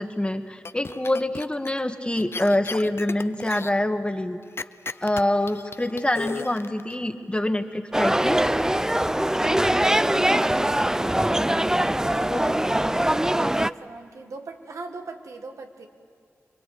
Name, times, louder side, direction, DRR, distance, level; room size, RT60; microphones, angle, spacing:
voice 1, 0.0-4.4 5.0-8.4 12.3-12.4, left 1 dB, 20° left, 7 dB, 1.7 m, -25 dB
sound 1, 0.6-1.8 2.2-3.7 4.6-6.9, left 4 dB, 50° left, 0.6 m, -35 dB
sound 2, 7.9-13.7, right 1 dB, 10° right, 0.5 m, -22 dB
voice 2, 9.9-11.5 12.1-15.9, right 3 dB, 85° right, 4 dB, 1.8 m, -41 dB
26.0 x 21.0 x 8.4 m, 2.3 s
cardioid pair, 40°, 5 cm